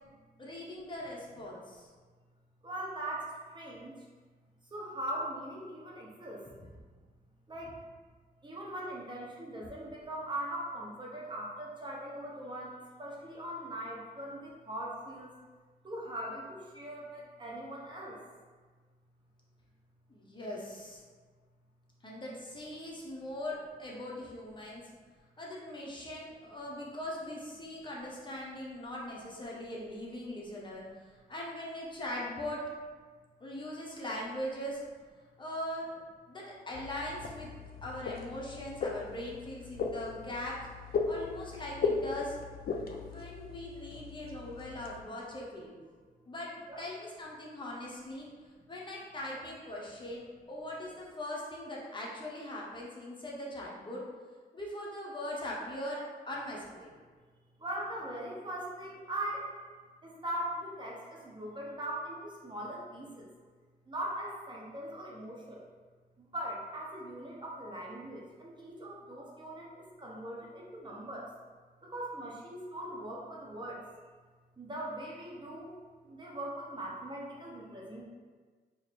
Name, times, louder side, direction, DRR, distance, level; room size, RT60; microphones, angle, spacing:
voice 1, 0.4-1.9 20.1-21.0 22.0-24.9 25.4-30.8 31.3-32.6 33.4-34.8 35.4-36.0 36.3-37.5 37.8-40.6 41.1-42.4 42.9-45.7 46.2-46.5 46.8-48.3 48.7-54.0 54.5-56.9, left 1 dB, 30° left, -4 dB, 0.8 m, -40 dB
voice 2, 2.6-3.3 3.5-3.9 4.7-6.4 7.5-7.7 8.4-12.7 13.0-15.3 15.8-18.2 46.7-46.8 57.6-59.5 60.0-63.3 63.9-65.6 66.3-71.3 71.8-73.8 74.6-75.7 76.1-78.0, right 1 dB, 30° right, -3 dB, 0.7 m, -40 dB
sound 1, 36.7-45.0, left 4 dB, 65° left, 0.4 m, -37 dB
2.9 x 2.5 x 4.3 m, 1.5 s
cardioid pair, 95°, 16 cm